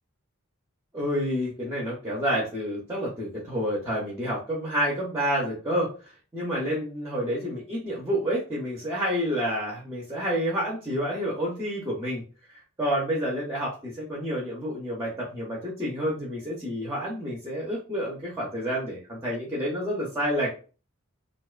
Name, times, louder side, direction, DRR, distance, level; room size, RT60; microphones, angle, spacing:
voice 1, 0.9-12.2 12.5-20.5, equal, 10° right, -4 dB, 0.5 m, -29 dB
2.5 x 2.2 x 2.3 m, 0.37 s
head